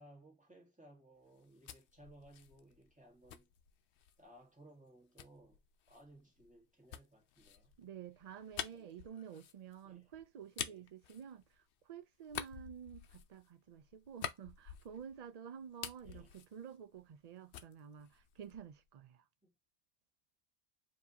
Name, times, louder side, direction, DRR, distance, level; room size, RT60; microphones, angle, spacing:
voice 1, 0.0-3.5 4.2-5.6 5.9-7.8 8.6-9.0 9.8-10.1 10.6-10.8 16.0-16.3 19.4-19.5, right 1 dB, 5° right, 1.5 m, -61 dB
sound 1, 1.3-4.3 5.2-11.8 12.2-15.3 15.6-17.3 17.5-18.8, left 9 dB, 90° left, 0.9 m, -48 dB
voice 2, 7.8-19.2, right 8 dB, 50° right, 0.5 m, -51 dB
4.7 x 2.8 x 2.8 m
omnidirectional pair, 1.1 m